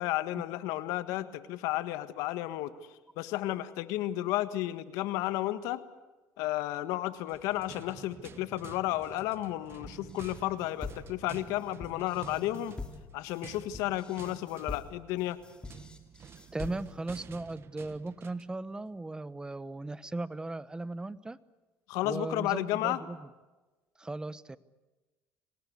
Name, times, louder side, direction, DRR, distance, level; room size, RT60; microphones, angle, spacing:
voice 1, 0.0-2.7 3.2-5.8 6.4-12.8 13.1-15.4 21.9-23.0, left 15 dB, 80° left, 12 dB, 1.6 m, -32 dB
sound 1, 7.2-18.6, right 8 dB, 45° right, 1.3 m, -51 dB
sound 2, 9.8-17.1, left 3 dB, 15° left, 3.2 m, -45 dB
voice 2, 16.5-21.4 22.0-23.3 24.0-24.6, right 2 dB, 15° right, 17 dB, 1.0 m, -37 dB
26.5 x 19.0 x 8.4 m, 1.2 s
supercardioid pair, 90°, 6 cm